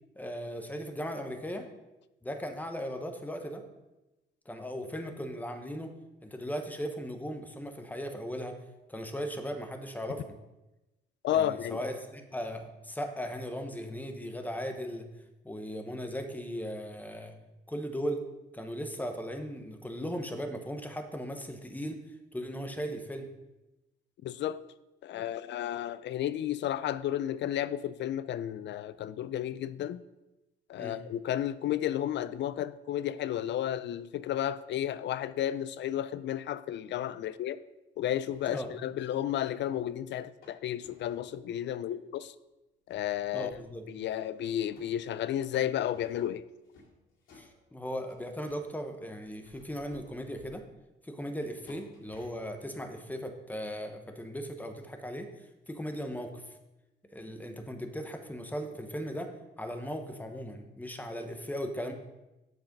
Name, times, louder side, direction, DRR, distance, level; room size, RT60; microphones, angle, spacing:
voice 1, 0.2-1.7 2.2-3.6 4.5-5.9 6.2-8.6 8.9-10.4 11.3-15.1 15.4-17.3 17.7-18.2 18.5-22.0 22.3-23.3 30.8-31.0 38.5-38.7 43.3-43.9 47.3-50.6 51.0-55.3 55.7-56.6 57.1-59.3 59.6-61.9, equal, 10° left, 1.0 m, -37 dB
voice 2, 11.2-11.8 24.2-24.6 25.0-30.0 30.7-37.6 38.0-42.3 42.9-43.5 43.9-46.4, left 11 dB, 65° left, 0.4 m, -32 dB
sound 1, 38.3-39.6 40.4-41.3 42.1-42.2 42.9-44.2 44.5-48.8 49.2-50.8 51.3-52.7, left 3 dB, 85° left, 2.4 m, -58 dB
7.4 x 4.8 x 5.3 m
cardioid pair, 90°, 20 cm